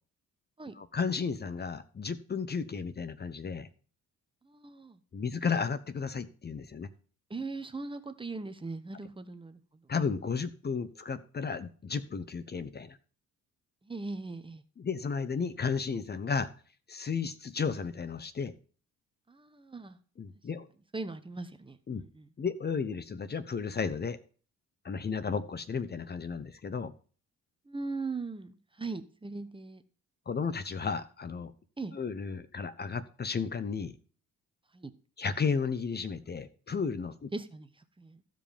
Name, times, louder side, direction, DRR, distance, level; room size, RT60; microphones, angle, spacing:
voice 1, 0.7-3.7 5.1-6.9 9.9-13.0 14.8-16.5 16.9-18.5 20.2-20.7 21.9-22.0 22.4-24.2 24.8-26.9 30.3-31.5 31.9-34.0 35.2-37.3, left 5 dB, 35° left, 13 dB, 0.9 m, -33 dB
voice 2, 4.4-5.0 7.3-9.6 13.8-14.6 19.3-20.0 20.9-22.3 27.7-29.8 31.8-32.0 34.7-34.9 37.3-37.7 38.0-38.2, right 3 dB, 15° right, 10 dB, 1.0 m, -39 dB
14.5 x 5.2 x 5.2 m, 0.40 s
cardioid pair, 90°, 30 cm